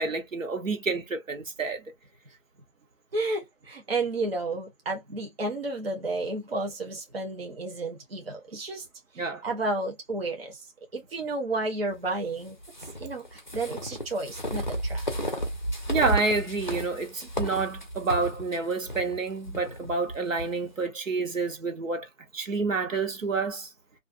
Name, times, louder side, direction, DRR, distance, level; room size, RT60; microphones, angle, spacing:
voice 1, 0.0-1.8 9.2-9.5 15.9-23.7, right 4 dB, 85° right, 1.0 m, -29 dB
voice 2, 3.1-8.9 9.1-10.7 10.9-12.6 13.0-15.0, right 2 dB, 50° right, 0.7 m, -32 dB
sound 1, 12.6-20.5, equal, 40° left, 0.5 m, -33 dB
2.5 x 2.2 x 2.4 m
figure-of-eight pair, 170°, 38 cm